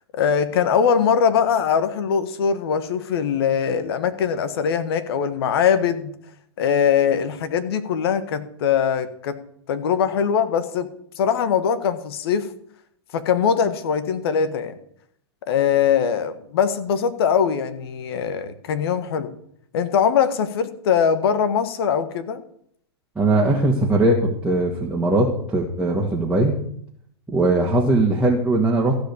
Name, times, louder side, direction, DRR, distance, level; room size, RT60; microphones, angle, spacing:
voice 1, 0.2-6.1 6.6-9.4 9.7-10.9 11.2-12.5 13.1-14.8 15.5-19.3 19.7-22.4, left 7 dB, 60° left, 11 dB, 1.5 m, -21 dB
voice 2, 23.2-26.6 27.3-29.0, right 2 dB, 10° right, -3 dB, 2.0 m, -20 dB
14.5 x 5.2 x 8.5 m, 0.67 s
hypercardioid pair, 105°, 14 cm